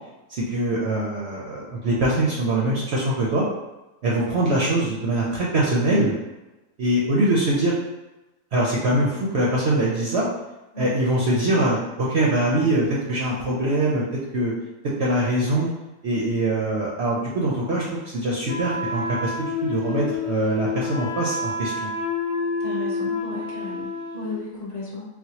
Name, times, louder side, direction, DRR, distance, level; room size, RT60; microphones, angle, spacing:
voice 1, 0.3-3.5 4.0-6.1 6.8-7.7 8.5-10.3 10.8-14.0 14.3-14.5 15.0-15.7 16.0-21.9, right 1 dB, 65° right, -4 dB, 0.7 m, -23 dB
Wind instrument woodwind instrument, 18.5-24.4, left 3 dB, 85° left, 1.1 m, -28 dB
voice 2, 22.6-25.1, left 2 dB, 35° left, -6 dB, 0.8 m, -34 dB
4.2 x 2.1 x 2.8 m, 1.1 s
omnidirectional pair, 1.6 m